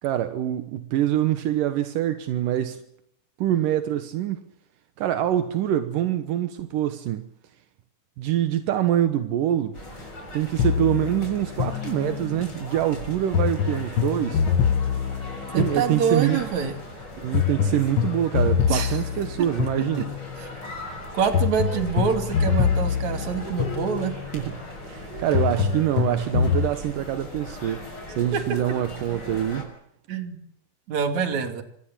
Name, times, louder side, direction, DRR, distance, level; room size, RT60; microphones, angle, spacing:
voice 1, 0.0-2.8 3.4-4.4 5.0-7.2 8.2-9.8 10.3-14.4 15.6-16.4 17.2-20.1 24.3-24.5 24.9-27.9 28.2-29.7, right 11 dB, 80° right, 2.8 m, -25 dB
sound 1, 9.7-29.6, left 1 dB, 30° left, 7.3 m, -39 dB
sound 2, 10.6-12.5 13.3-16.4 17.3-20.4 21.3-24.4 25.3-26.7, left 7 dB, 60° left, 1.4 m, -25 dB
voice 2, 15.5-16.8 18.7-19.0 19.9-20.0 20.4-20.5 21.1-24.2 28.3-28.4 30.1-30.4 30.9-31.6, right 6 dB, 60° right, 3.8 m, -26 dB
26.0 x 20.0 x 7.4 m
omnidirectional pair, 3.8 m